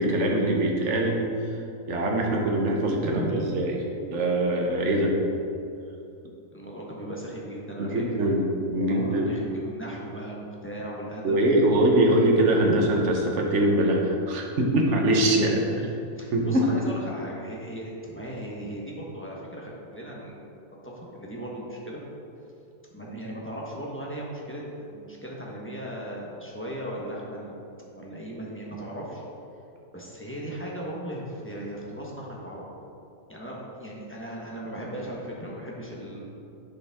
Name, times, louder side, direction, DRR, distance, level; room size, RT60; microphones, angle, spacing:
voice 1, 0.0-1.5 1.9-3.8 4.1-5.1 7.8-8.4 8.7-9.3 11.2-15.9 16.3-16.7, right 1 dB, 50° right, 0 dB, 1.3 m, -23 dB
voice 2, 3.0-3.4 6.5-8.4 8.7-11.8 12.6-13.0 15.7-20.4 20.8-22.0 22.9-27.6 27.9-29.2 29.9-32.6 33.3-36.2, right 1 dB, 10° left, -4 dB, 1.0 m, -37 dB
10.5 x 5.3 x 3.6 m, 2.7 s
omnidirectional pair, 1.7 m